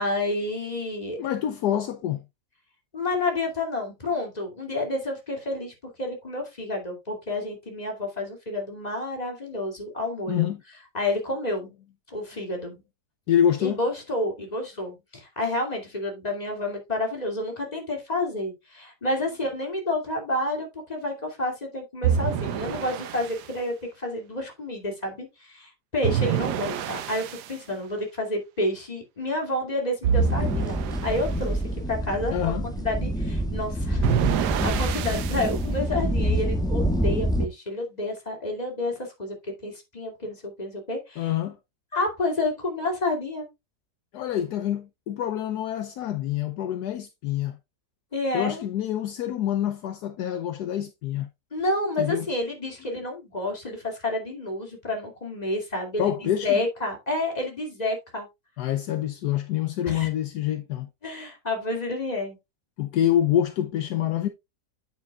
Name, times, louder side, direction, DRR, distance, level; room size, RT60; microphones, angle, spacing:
voice 1, 0.0-1.2 2.9-10.5 10.9-11.7 12.1-12.8 13.6-39.3 39.6-41.3 41.9-43.5 48.1-48.7 51.5-58.3 59.8-60.1 61.0-62.4, left 2 dB, 25° left, 2.7 m, -30 dB
voice 2, 1.2-2.2 10.3-10.6 13.3-13.8 32.3-32.7 41.2-41.6 44.1-47.6 48.3-51.3 52.0-52.3 56.0-56.6 58.6-60.9 62.8-64.3, left 10 dB, 70° left, 1.2 m, -26 dB
sound 1, 22.0-23.5 26.0-27.5 30.0-31.4 34.0-35.6, right 9 dB, 75° right, 1.3 m, -27 dB
sound 2, 30.1-37.5, equal, 5° left, 1.1 m, -26 dB
8.9 x 8.1 x 2.4 m
omnidirectional pair, 1.8 m